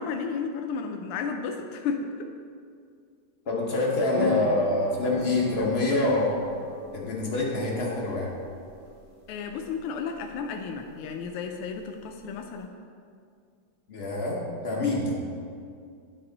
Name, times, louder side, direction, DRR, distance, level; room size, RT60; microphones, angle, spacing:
voice 1, 0.0-2.1 9.3-12.7, left 5 dB, 85° left, 4 dB, 1.5 m, -33 dB
voice 2, 3.5-6.4 6.9-8.3 13.9-14.4 14.6-15.2, left 2 dB, 50° left, -2 dB, 0.7 m, -26 dB
sound 1, 4.1-12.6, left 3 dB, 40° right, 1.0 m, -40 dB
10.5 x 4.4 x 3.9 m, 2.3 s
omnidirectional pair, 2.4 m